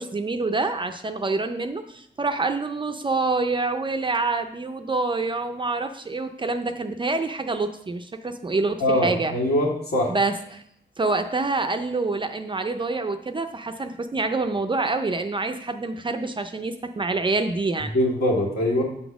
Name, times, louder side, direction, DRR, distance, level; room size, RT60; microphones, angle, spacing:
voice 1, 0.0-9.3 10.1-10.6 11.0-17.9, right 3 dB, 25° right, 7 dB, 0.4 m, -26 dB
voice 2, 8.8-10.2 17.8-18.8, left 1 dB, 65° left, -2 dB, 2.1 m, -22 dB
7.7 x 4.0 x 6.0 m, 0.71 s
wide cardioid pair, 140°, 18 cm